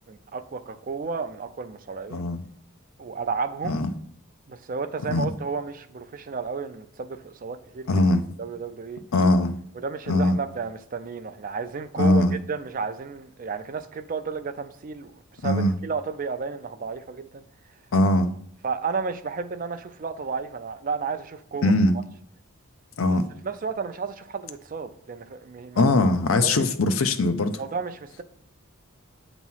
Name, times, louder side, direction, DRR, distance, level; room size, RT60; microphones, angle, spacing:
voice 1, 0.0-2.2 3.0-3.8 4.5-7.9 8.4-9.0 9.7-15.1 15.4-17.4 18.6-21.7 23.4-25.9 26.4-26.6 27.6-28.2, right 5 dB, 40° right, 0.4 m, -32 dB
voice 2, 2.1-2.4 3.6-3.9 5.1-5.3 7.9-8.2 9.1-9.5 10.1-10.4 12.0-12.4 15.4-15.8 17.9-18.3 21.6-21.9 23.0-23.3 25.8-27.6, left 2 dB, 70° left, 0.6 m, -21 dB
8.2 x 3.0 x 5.5 m
head